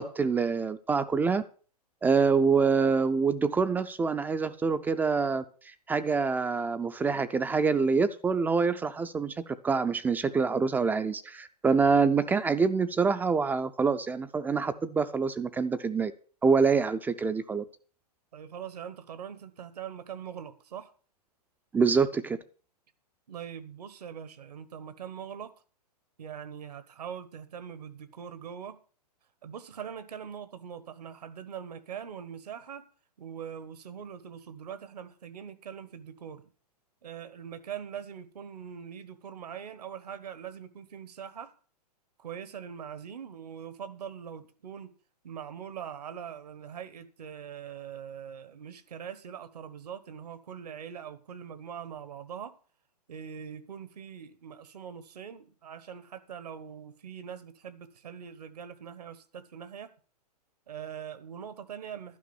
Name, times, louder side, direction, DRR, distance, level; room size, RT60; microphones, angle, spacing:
voice 1, 0.0-1.4 2.0-16.1 16.4-17.6 21.7-22.4, right 5 dB, 10° right, 12 dB, 0.4 m, -26 dB
voice 2, 18.3-20.9 23.3-25.5 26.2-28.8 29.4-32.8 33.2-36.5 37.0-41.5 42.2-44.9 45.2-52.5 53.1-59.9 60.7-62.2, right 8 dB, 70° right, 13 dB, 1.3 m, -42 dB
11.5 x 5.1 x 7.0 m, 0.42 s
hypercardioid pair, 125°, 21 cm